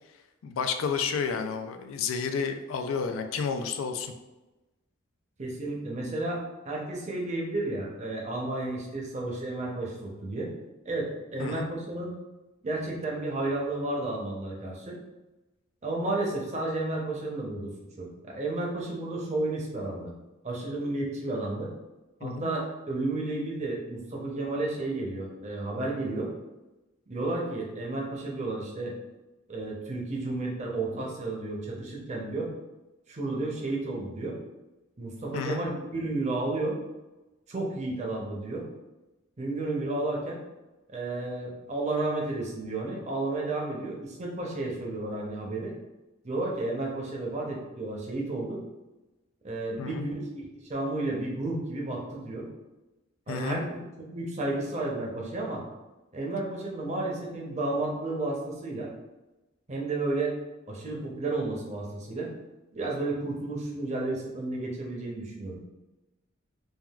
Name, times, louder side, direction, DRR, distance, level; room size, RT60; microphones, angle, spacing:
voice 1, 0.4-4.1 11.4-11.7 22.2-22.5 35.3-35.6 49.8-50.1 53.3-53.6, left 5 dB, 90° left, 7 dB, 0.3 m, -31 dB
voice 2, 5.4-10.5 10.8-12.1 12.6-15.0 15.8-17.7 18.0-20.1 20.4-21.7 22.2-26.3 27.1-28.9 29.5-32.5 33.1-34.4 35.0-36.8 37.5-38.7 39.4-40.4 40.9-45.7 46.2-48.6 49.4-52.5 53.3-55.6 56.1-58.9 59.7-60.4 60.7-62.3 62.7-65.6, right 2 dB, 35° right, -1 dB, 0.6 m, -32 dB
3.4 x 2.3 x 2.3 m, 1.1 s
head